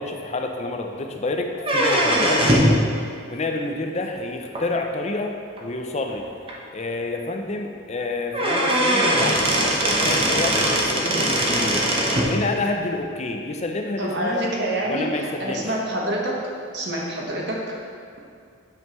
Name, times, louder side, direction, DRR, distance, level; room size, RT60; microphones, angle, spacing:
voice 1, 0.0-2.9 3.3-6.2 6.7-11.9 12.2-14.5 14.8-15.7, left 2 dB, 30° left, 3 dB, 0.5 m, -28 dB
sound 1, 1.6-2.8 4.5-4.6 5.6-5.7 6.1-6.2 6.5-6.6 8.0-8.1 8.3-12.3, right 1 dB, 25° right, 0.8 m, -20 dB
voice 2, 14.0-16.4 16.7-17.6, right 1 dB, 55° right, -2 dB, 1.2 m, -26 dB
9.3 x 5.3 x 3.1 m, 2.3 s
head